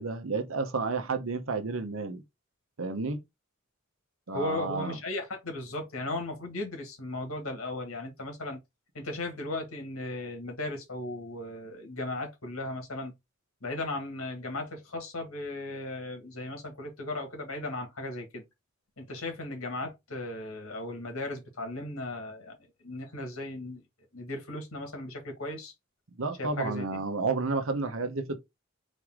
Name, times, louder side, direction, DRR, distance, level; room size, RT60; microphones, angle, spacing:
voice 1, 0.0-2.2 2.8-3.2 4.3-5.0 26.2-28.4, right 3 dB, 75° right, 0.9 m, -31 dB
voice 2, 4.3-8.6 8.9-13.1 13.6-18.4 19.0-22.6 22.8-23.8 24.1-25.7 26.4-27.0, left 2 dB, 85° left, 1.9 m, -36 dB
4.1 x 3.4 x 3.6 m
head